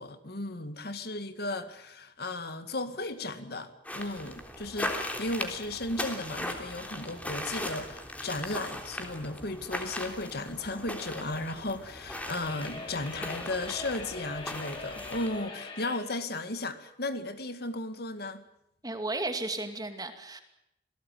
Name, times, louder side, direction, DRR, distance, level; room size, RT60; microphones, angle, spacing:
voice 1, 0.0-18.4, left 2 dB, 60° left, 2.1 m, -35 dB
sound 1, 3.8-15.4, left 1 dB, 10° left, 3.4 m, -39 dB
sound 2, 12.4-16.0, left 3 dB, 30° left, 7.1 m, -42 dB
voice 2, 18.8-20.4, right 2 dB, 20° right, 2.7 m, -34 dB
27.0 x 18.5 x 9.2 m
head